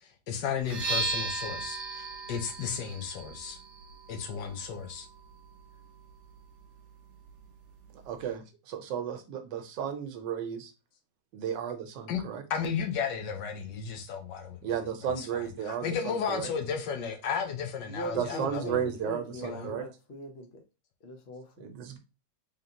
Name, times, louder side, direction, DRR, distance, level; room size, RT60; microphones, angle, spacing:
voice 1, 0.0-3.6 4.1-5.1 12.1-12.2 12.5-14.7 15.2-18.8 19.4-19.7, left 7 dB, 70° left, 1.4 m, -34 dB
sound 1, 0.6-8.4, right 3 dB, 50° right, 1.0 m, -38 dB
voice 2, 8.1-10.7 11.3-12.4 14.6-16.5 18.2-19.8 21.6-22.0, right 8 dB, 75° right, 1.3 m, -34 dB
voice 3, 17.8-20.6 21.0-21.7, right 1 dB, 50° left, 0.7 m, -40 dB
3.8 x 3.6 x 2.8 m
omnidirectional pair, 2.0 m